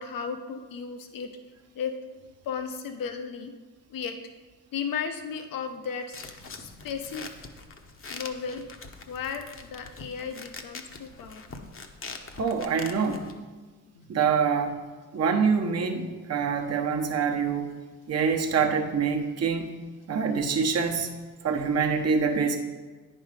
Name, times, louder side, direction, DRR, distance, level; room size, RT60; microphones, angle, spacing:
voice 1, 0.0-1.4 1.7-2.0 2.2-3.5 3.9-4.2 4.7-6.2 6.6-7.3 8.1-8.7 9.1-11.7 13.9-14.0, left 6 dB, 70° left, 6 dB, 1.0 m, -35 dB
sound 1, 6.1-13.3, left 4 dB, 35° left, 0.9 m, -43 dB
voice 2, 12.4-13.3 14.1-14.8 15.1-17.7 18.1-19.8 20.1-21.1 21.4-22.6, right 5 dB, 45° right, 3 dB, 1.1 m, -25 dB
9.4 x 5.5 x 5.0 m, 1.3 s
cardioid pair, 80°, 35 cm